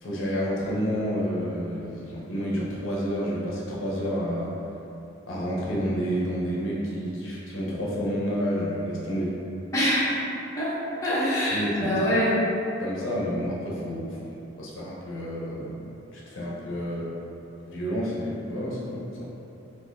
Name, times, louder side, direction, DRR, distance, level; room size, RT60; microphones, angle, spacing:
voice 1, 0.0-4.6 5.3-9.4 11.5-12.0 12.8-14.2 14.6-17.2 17.7-19.3, equal, 80° left, -6 dB, 0.7 m, -29 dB
voice 2, 9.7-10.1 10.6-10.7 11.0-12.4, equal, 15° left, -11 dB, 0.8 m, -24 dB
3.9 x 2.6 x 2.7 m, 2.9 s
head